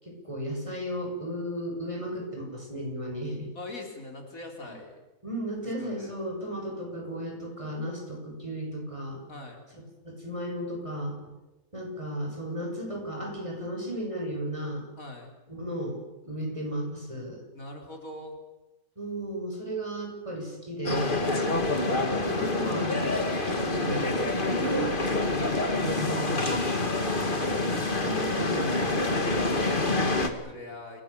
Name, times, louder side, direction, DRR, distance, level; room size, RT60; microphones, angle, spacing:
voice 1, 0.0-3.5 5.2-9.2 10.0-11.2 11.7-14.8 15.5-16.0 16.2-17.4 19.0-21.3 22.1-23.0 23.5-26.4 27.9-28.7, right 1 dB, 20° right, 1 dB, 7.2 m, -34 dB
voice 2, 3.6-5.0 5.8-6.1 9.3-9.6 15.0-15.3 17.5-18.4 21.3-21.5 26.1-27.7 28.3-31.0, left 2 dB, 65° left, 2 dB, 4.2 m, -43 dB
sound 1, 20.8-30.3, left 2 dB, 35° left, 2.3 m, -27 dB
28.0 x 18.5 x 8.4 m, 1.1 s
omnidirectional pair, 1.5 m